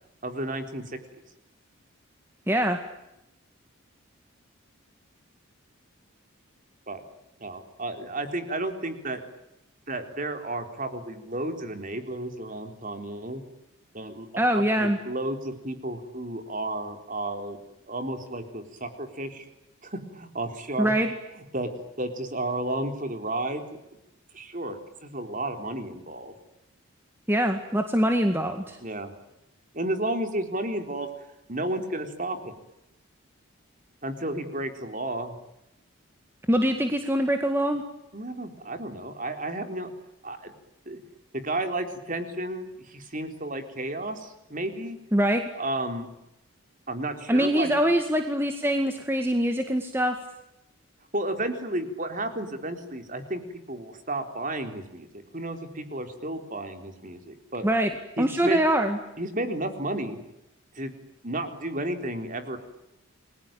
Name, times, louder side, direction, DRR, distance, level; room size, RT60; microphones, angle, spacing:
voice 1, 0.2-1.0 6.9-7.0 7.4-9.2 9.9-13.4 13.9-14.3 14.5-17.6 17.9-19.5 19.8-20.9 21.5-21.7 22.0-23.6 24.3-26.3 28.8-29.1 29.7-31.1 31.5-32.6 34.0-35.3 38.1-39.9 40.2-40.5 40.9-41.0 41.3-45.0 45.5-46.1 46.9-47.9 51.1-55.1 55.3-57.6 58.2-58.6 59.2-60.2 60.8-60.9 61.2-62.6, right 1 dB, 35° right, 7 dB, 3.9 m, -32 dB
voice 2, 2.5-2.8 14.4-15.0 20.8-21.1 27.3-28.8 36.5-37.8 45.1-45.4 47.3-50.1 57.6-57.9 58.2-59.0, equal, 10° right, 5 dB, 2.0 m, -23 dB
30.0 x 22.0 x 9.0 m, 0.89 s
head